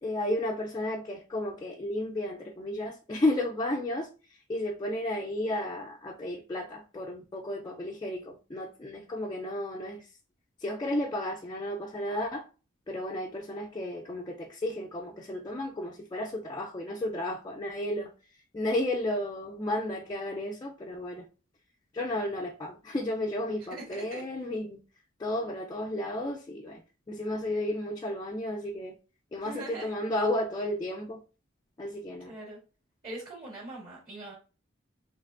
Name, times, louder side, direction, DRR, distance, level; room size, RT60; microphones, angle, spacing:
voice 1, 0.0-10.1 10.6-12.5 12.9-21.3 21.9-24.8 25.2-26.8 27.1-29.0 29.3-31.2 31.8-32.3, left 1 dB, 20° left, 0.3 m, -33 dB
voice 2, 23.7-24.2 29.4-29.9 32.2-32.6 33.0-34.3, right 2 dB, 45° right, 1.9 m, -42 dB
4.2 x 3.2 x 2.5 m
head